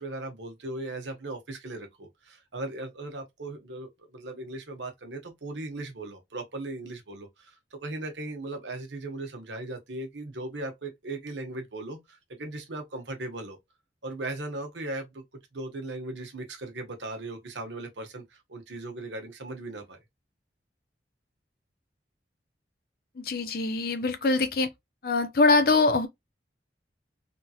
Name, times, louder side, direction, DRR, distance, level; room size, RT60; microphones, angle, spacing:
voice 1, 0.0-13.6 14.0-15.2 15.5-20.0, right 2 dB, 90° right, 1.1 m, -38 dB
voice 2, 23.2-24.7 25.0-26.1, left 3 dB, 55° left, 0.6 m, -23 dB
3.6 x 2.8 x 2.3 m
head